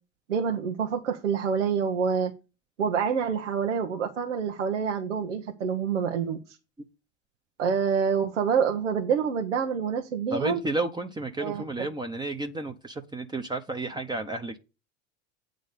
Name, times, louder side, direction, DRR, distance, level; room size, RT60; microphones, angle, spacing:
voice 1, 0.3-2.3 2.8-6.4 7.6-10.6 11.4-11.9, right 6 dB, 90° right, 1.3 m, -27 dB
voice 2, 10.3-14.6, right 2 dB, 10° right, 0.9 m, -32 dB
8.9 x 3.9 x 6.6 m
hypercardioid pair, 95°, 36 cm